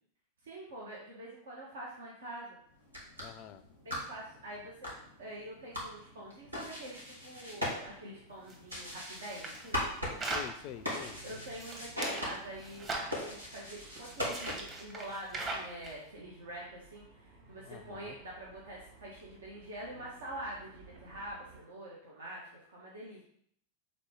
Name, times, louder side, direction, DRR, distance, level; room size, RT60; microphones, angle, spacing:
voice 1, 0.4-2.6 3.8-4.9 5.2-9.8 11.2-23.2, right 1 dB, 65° right, -4 dB, 1.3 m, -45 dB
sound 1, 2.8-14.9, equal, 85° right, 1.8 m, -41 dB
voice 2, 3.2-3.6 10.2-11.2 17.7-18.2, left 11 dB, 40° left, 12 dB, 0.4 m, -46 dB
sound 2, 8.5-10.5 11.2-12.3 12.6-13.2 14.0-15.9, right 2 dB, 25° right, 1.4 m, -40 dB
sound 3, 10.6-21.6, right 3 dB, 50° right, 1.8 m, -58 dB
6.5 x 4.0 x 3.7 m, 0.65 s
figure-of-eight pair, 90°, 0 cm